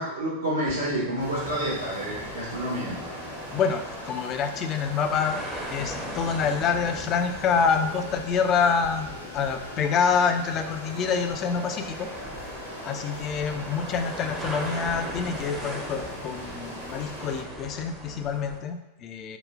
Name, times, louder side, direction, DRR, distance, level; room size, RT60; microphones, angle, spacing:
voice 1, 0.0-3.0, right 1 dB, 70° right, -9 dB, 0.8 m, -29 dB
sound 1, 0.7-18.6, right 1 dB, 10° right, 0.6 m, -39 dB
sound 2, 1.2-17.4, left 1 dB, 85° left, 0.8 m, -41 dB
voice 2, 3.5-12.1 12.8-19.4, left 6 dB, 35° left, 7 dB, 0.3 m, -27 dB
3.9 x 2.1 x 3.4 m, 0.96 s
figure-of-eight pair, 90°, 0 cm